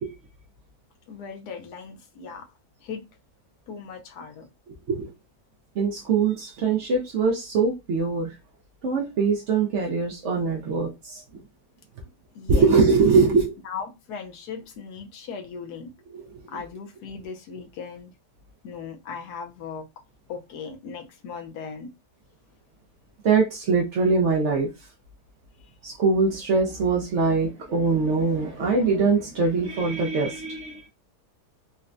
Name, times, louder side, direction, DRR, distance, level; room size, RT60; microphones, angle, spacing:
voice 1, 1.1-2.5 2.8-3.0 3.7-4.5 12.3-12.7 13.6-15.9 16.5-18.1 18.6-19.9 20.3-21.9 25.6-25.7, left 6 dB, 80° left, 1.2 m, -38 dB
voice 2, 5.8-8.3 8.8-11.2 12.5-13.5 16.1-16.2 23.2-24.7 25.8-30.8, right 4 dB, 65° right, 0.8 m, -22 dB
4.0 x 2.1 x 2.5 m
omnidirectional pair, 1.7 m